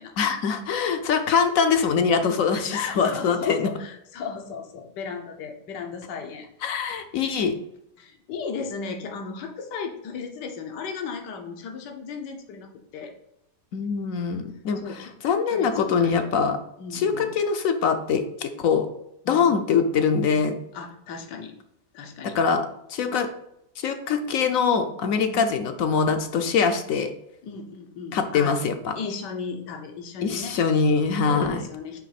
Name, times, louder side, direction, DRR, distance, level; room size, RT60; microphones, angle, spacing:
voice 1, 0.2-3.7 6.6-7.6 13.7-16.6 16.9-18.9 19.3-20.6 22.2-23.3 23.8-27.1 28.1-29.0 30.2-31.6, left 6 dB, 65° left, 7 dB, 0.9 m, -23 dB
voice 2, 2.7-6.5 8.0-13.1 14.8-15.1 15.5-16.2 16.8-17.3 19.2-19.5 20.7-21.5 21.9-22.4 25.2-25.4 27.4-28.6 29.0-30.6 31.3-32.0, left 5 dB, 80° left, 3 dB, 1.5 m, -35 dB
9.0 x 3.1 x 4.1 m, 0.79 s
omnidirectional pair, 1.8 m